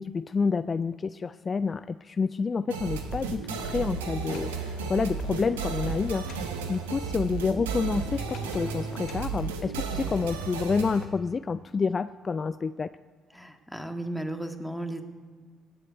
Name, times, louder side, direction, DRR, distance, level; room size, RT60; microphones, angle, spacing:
voice 1, 0.0-12.9, left 5 dB, 35° left, 13 dB, 0.4 m, -29 dB
sound 1, 2.7-11.1, right 5 dB, 85° right, 1.3 m, -33 dB
Sliding door, 4.2-6.5 8.3-9.3, left 8 dB, 65° left, 1.0 m, -47 dB
voice 2, 13.3-15.0, right 1 dB, ahead, 5 dB, 1.8 m, -35 dB
17.5 x 7.7 x 9.4 m, 1.5 s
hypercardioid pair, 50°, 0 cm